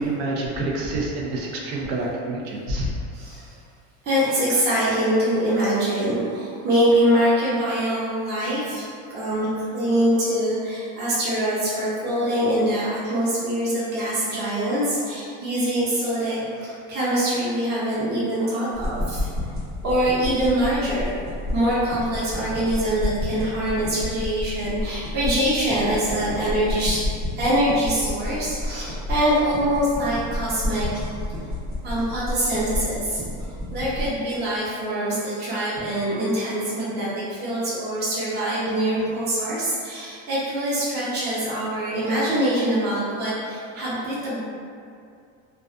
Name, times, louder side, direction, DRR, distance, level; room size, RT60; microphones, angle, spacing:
voice 1, 0.0-2.9, right 2 dB, 70° right, -2 dB, 0.6 m, -27 dB
voice 2, 3.1-3.5 4.0-8.8 9.1-19.3 19.8-21.2 21.5-27.0 27.4-30.9 31.8-33.2 33.7-44.4, right 1 dB, 30° right, -9 dB, 0.7 m, -24 dB
sound 1, 18.7-34.1, left 1 dB, 50° right, 1.0 m, -31 dB
2.4 x 2.3 x 2.4 m, 2.3 s
supercardioid pair, 125°, 34 cm